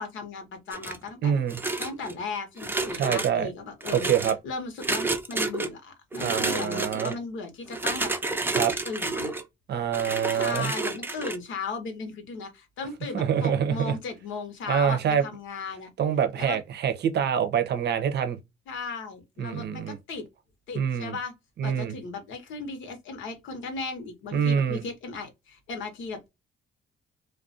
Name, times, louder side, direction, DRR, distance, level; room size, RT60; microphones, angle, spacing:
voice 1, 0.0-1.4 1.8-4.1 4.4-8.1 8.8-9.3 10.3-15.9 16.4-16.6 18.7-20.3 20.7-21.3 21.6-26.3, left 4 dB, 75° left, 0.9 m, -36 dB
sound 1, 0.7-1.1 1.5-2.1 2.6-3.3 3.8-4.3 4.8-5.7 6.1-7.1 7.7-9.4 9.9-11.4, right 3 dB, 10° right, 0.5 m, -30 dB
voice 2, 1.2-1.6 2.9-3.5 3.9-4.4 6.2-7.1 8.5-8.7 9.7-10.7 13.1-13.9 14.7-15.2 16.0-18.4 19.4-20.0 20.7-21.1 21.6-22.0 24.3-24.8, right 8 dB, 60° right, 0.6 m, -25 dB
2.3 x 2.2 x 2.5 m
cardioid pair, 90°, 20 cm